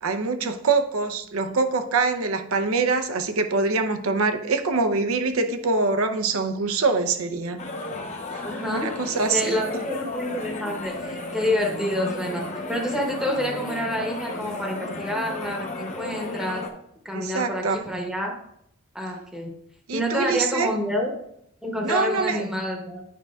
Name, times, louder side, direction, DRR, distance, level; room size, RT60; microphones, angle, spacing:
voice 1, 0.0-7.6 8.3-8.4 8.7-9.6 17.1-17.8 19.9-20.7 21.8-22.4, right 4 dB, 75° right, 7 dB, 0.6 m, -24 dB
sound 1, 7.6-16.7, left 2 dB, 30° left, 0.8 m, -34 dB
voice 2, 8.4-8.9 9.3-12.4 12.7-16.7 17.0-18.3 18.9-19.5 19.9-21.1 21.6-23.0, left 1 dB, 5° right, 0 dB, 0.9 m, -28 dB
9.3 x 5.4 x 2.4 m, 0.73 s
head